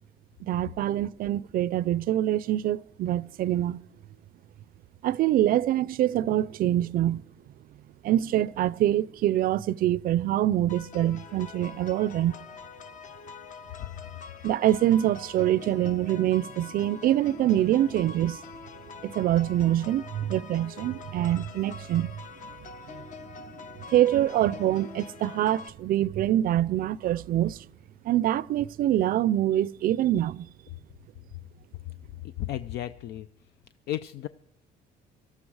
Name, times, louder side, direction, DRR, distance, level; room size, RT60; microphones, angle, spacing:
voice 1, 0.4-3.8 5.0-7.2 8.0-12.3 14.4-18.4 19.0-22.1 22.5-22.6 22.9-23.0 23.5-23.6 23.9-27.6 28.0-30.5, right 12 dB, 60° right, 0.4 m, -25 dB
sound 1, 10.7-25.7, left 5 dB, 50° left, 0.9 m, -45 dB
voice 2, 32.4-33.3 33.9-34.3, left 13 dB, 75° left, 0.5 m, -33 dB
18.0 x 13.0 x 4.8 m
cardioid pair, 110°, 17 cm